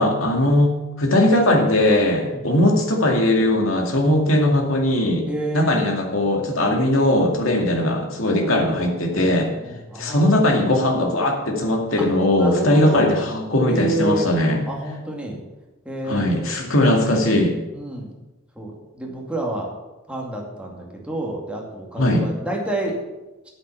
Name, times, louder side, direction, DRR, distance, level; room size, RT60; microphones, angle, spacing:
voice 1, 0.0-5.3 5.5-9.5 10.0-14.6 16.1-17.5 22.0-22.3, left 1 dB, 70° left, 2 dB, 2.3 m, -19 dB
voice 2, 5.3-5.7 7.6-7.8 8.3-8.8 9.1-10.3 12.0-12.1 12.4-13.1 13.7-14.3 14.7-15.4 15.9-16.6 17.7-18.1 18.6-19.7 20.1-23.0, right 2 dB, 5° right, -1 dB, 2.3 m, -29 dB
8.8 x 8.8 x 7.0 m, 1.1 s
head